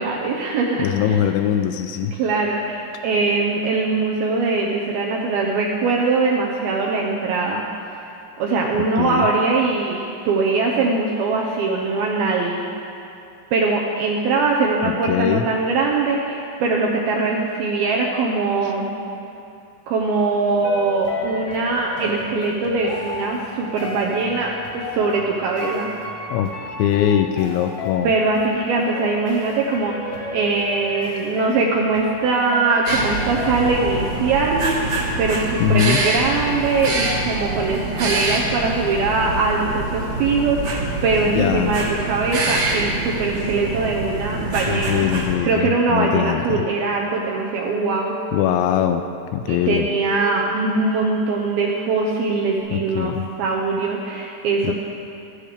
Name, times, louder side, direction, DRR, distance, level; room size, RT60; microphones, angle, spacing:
voice 1, 0.0-1.2 2.1-7.6 8.0-8.1 8.4-12.6 13.5-18.9 19.9-25.9 28.0-29.9 30.3-45.1 45.4-48.1 49.5-53.1 53.4-54.7, right 3 dB, 75° right, -1 dB, 2.3 m, -22 dB
voice 2, 0.8-2.1 8.8-9.3 14.8-15.5 18.6-18.7 26.3-28.1 35.6-36.0 41.3-41.8 44.7-46.6 48.3-49.1 49.3-49.9 52.7-53.3 54.6-54.7, left 10 dB, 85° left, 7 dB, 2.7 m, -22 dB
sound 1, 20.6-39.2 39.5-39.6, left 2 dB, 45° left, 1.6 m, -34 dB
sound 2, 32.9-45.4, right 2 dB, 55° right, 1.9 m, -25 dB
sound 3, 47.4-52.6, right 2 dB, 65° left, 2.2 m, -37 dB
15.0 x 13.5 x 5.1 m, 2.7 s
omnidirectional pair, 5.5 m